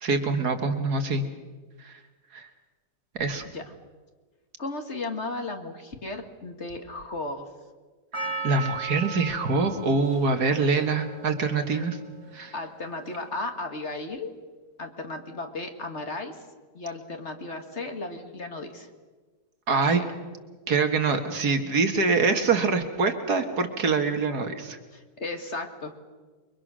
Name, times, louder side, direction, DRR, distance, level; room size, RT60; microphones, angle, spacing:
voice 1, 0.0-1.2 1.8-1.9 2.3-2.5 3.2-3.5 8.4-12.0 12.3-12.5 19.7-20.0 20.7-24.8, right 4 dB, 65° right, 6 dB, 2.1 m, -24 dB
voice 2, 4.6-7.5 11.7-11.8 12.5-14.3 14.8-16.4 16.7-18.9 19.7-20.1 24.9-26.0, left 2 dB, 40° left, 5 dB, 2.0 m, -35 dB
Percussion, 8.1-12.5 13.1-13.2, right 4 dB, 20° right, 1.4 m, -37 dB
28.5 x 23.0 x 6.3 m, 1.4 s
omnidirectional pair, 1.8 m